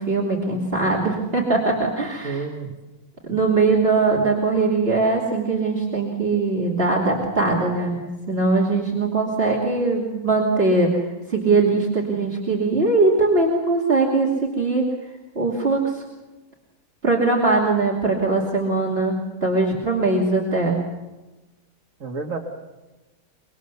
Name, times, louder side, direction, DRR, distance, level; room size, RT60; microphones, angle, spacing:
voice 1, 0.0-2.5 3.3-8.0 8.3-14.9 15.3-16.0 17.0-20.8, right 3 dB, 40° right, -3 dB, 3.0 m, -21 dB
voice 2, 2.2-2.7 22.0-22.4, right 4 dB, 65° right, 0 dB, 2.3 m, -29 dB
24.5 x 23.0 x 7.0 m, 1.1 s
omnidirectional pair, 1.5 m